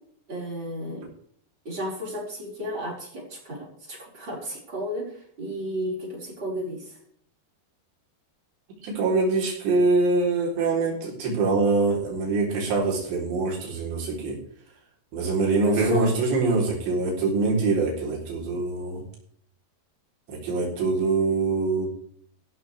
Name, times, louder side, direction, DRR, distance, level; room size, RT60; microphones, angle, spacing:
voice 1, 0.3-1.1 1.7-7.0 15.2-16.1, equal, 25° right, -3 dB, 5.6 m, -33 dB
voice 2, 8.8-14.4 15.1-19.0 20.3-21.9, right 3 dB, 90° right, -2 dB, 6.1 m, -24 dB
15.5 x 12.5 x 3.5 m, 0.63 s
omnidirectional pair, 4.9 m